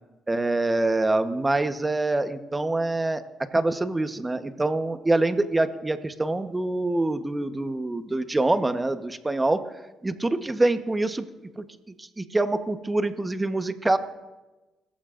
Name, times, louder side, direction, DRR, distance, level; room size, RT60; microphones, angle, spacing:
voice 1, 0.3-9.6 10.0-11.3 11.6-11.7 12.0-14.0, right 2 dB, 15° right, 9 dB, 1.1 m, -25 dB
29.0 x 14.5 x 2.6 m, 1.1 s
cardioid pair, 90°, 0 cm